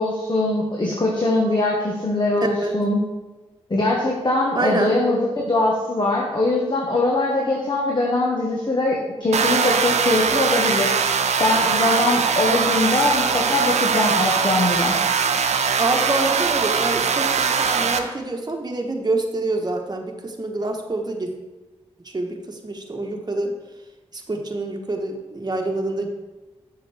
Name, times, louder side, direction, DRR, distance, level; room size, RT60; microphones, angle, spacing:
voice 1, 0.0-3.0 3.7-10.9 11.4-15.0, left 2 dB, 40° left, -2 dB, 1.3 m, -22 dB
voice 2, 4.5-4.9 12.5-12.6 15.8-21.3 22.1-23.5 24.3-26.1, right 2 dB, 35° right, 2 dB, 1.1 m, -26 dB
sound 1, 9.3-18.0, right 6 dB, 80° right, 0.5 m, -21 dB
7.6 x 5.8 x 3.4 m, 1.2 s
cardioid pair, 45°, 11 cm